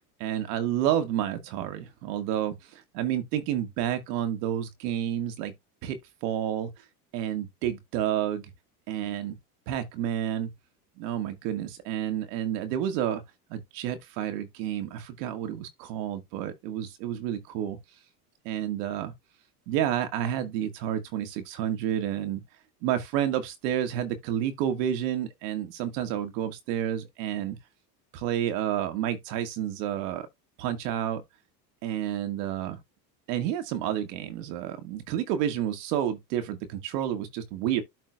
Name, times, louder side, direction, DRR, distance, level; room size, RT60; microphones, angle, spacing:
voice 1, 0.2-5.5 5.8-6.7 7.1-8.5 8.9-9.4 9.7-10.5 11.0-13.2 13.5-17.8 18.4-19.1 19.7-22.4 22.8-27.6 28.1-30.3 30.6-31.2 31.8-32.8 33.3-37.8, right 10 dB, 70° right, 2.1 m, -30 dB
13.0 x 4.5 x 2.4 m
supercardioid pair, 100°, 50 cm